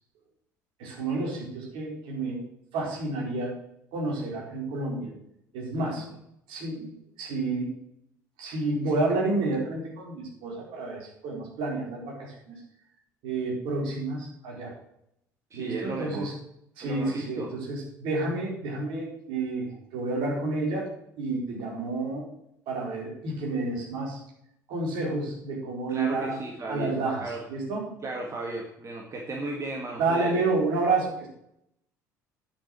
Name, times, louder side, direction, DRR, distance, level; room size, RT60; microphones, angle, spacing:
voice 1, 0.8-2.4 2.7-3.6 3.9-5.1 5.5-6.0 6.5-6.9 7.2-7.7 8.4-12.6 13.2-14.7 15.5-16.3 16.8-20.9 21.2-22.2 22.7-24.2 24.7-26.4 26.7-27.9 30.0-31.3, right 3 dB, 60° right, -1 dB, 4.6 m, -30 dB
voice 2, 15.5-16.3 16.8-17.6 21.6-21.7 25.9-27.4 28.0-30.4, right 2 dB, 30° right, 1 dB, 1.9 m, -35 dB
10.0 x 6.7 x 6.2 m, 0.75 s
figure-of-eight pair, 60°, 10 cm